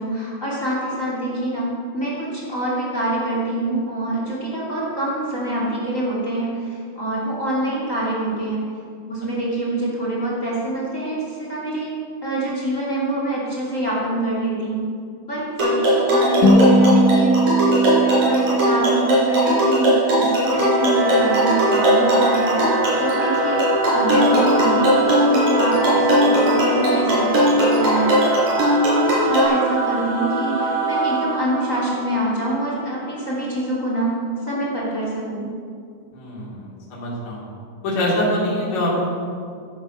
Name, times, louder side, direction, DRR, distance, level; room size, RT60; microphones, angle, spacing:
voice 1, 0.0-1.7 1.9-8.6 9.1-11.9 12.2-14.9 15.3-22.6 23.0-23.6 23.9-34.1 34.5-35.5, right 1 dB, 25° left, -5 dB, 2.8 m, -25 dB
sound 1, 15.6-29.4, equal, 85° right, 5.9 m, -19 dB
sound 2, 16.4-20.7, right 1 dB, 85° left, 5.7 m, -19 dB
Singing / Musical instrument, 20.3-33.2, right 1 dB, 20° right, 4.8 m, -24 dB
voice 2, 36.1-37.5 37.8-39.0, left 1 dB, 55° left, -6 dB, 4.4 m, -24 dB
15.0 x 9.8 x 6.4 m, 2.2 s
omnidirectional pair, 3.9 m